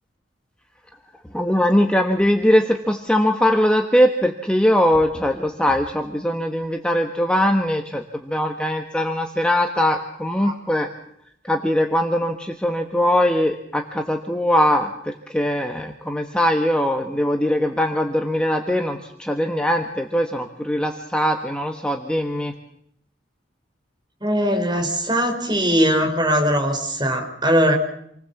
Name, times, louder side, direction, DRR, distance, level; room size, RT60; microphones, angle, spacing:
voice 1, 1.3-10.9 11.5-22.5, equal, 5° left, 3 dB, 1.3 m, -21 dB
voice 2, 24.2-27.7, equal, 20° right, 2 dB, 5.1 m, -20 dB
28.0 x 20.0 x 7.2 m, 0.73 s
head